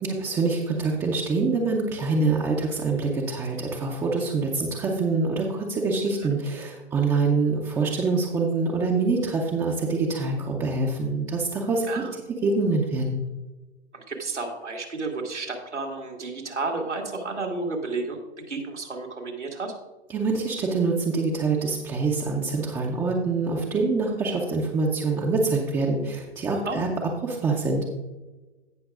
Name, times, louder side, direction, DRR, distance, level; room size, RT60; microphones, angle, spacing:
voice 1, 0.0-11.9 12.4-13.2 20.1-26.9 27.2-27.9, right 3 dB, 10° right, -2 dB, 0.6 m, -25 dB
voice 2, 13.9-19.7 26.6-26.8, right 3 dB, 90° right, 0 dB, 2.1 m, -32 dB
17.0 x 5.9 x 2.4 m, 1.2 s
figure-of-eight pair, 125°, 34 cm